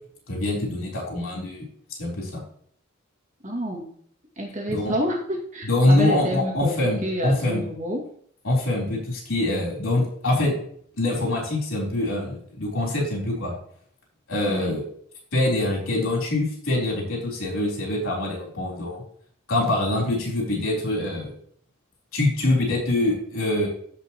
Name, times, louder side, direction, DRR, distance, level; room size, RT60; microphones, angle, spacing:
voice 1, 0.3-1.6 2.0-2.4 4.7-4.9 5.6-7.6 8.4-10.6 11.0-13.5 14.3-14.8 15.3-19.0 19.5-21.3 22.1-23.7, left 1 dB, 85° left, -2 dB, 3.8 m, -24 dB
voice 2, 3.4-3.9 4.4-8.1 14.5-14.8, equal, 35° right, -1 dB, 2.3 m, -29 dB
15.0 x 5.5 x 3.1 m, 0.62 s
head